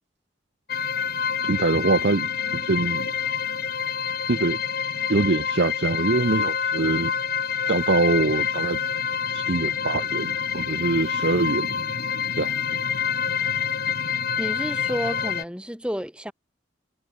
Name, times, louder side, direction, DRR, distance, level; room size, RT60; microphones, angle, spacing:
sound 1, 0.7-15.4, left 7 dB, 50° left, 1.2 m, -27 dB
voice 1, 1.4-3.1 4.3-4.6 5.1-7.1 7.7-8.8 9.3-11.8 12.4-12.5, right 3 dB, 55° right, 0.7 m, -24 dB
voice 2, 14.4-16.3, equal, 5° right, 3.6 m, -30 dB
head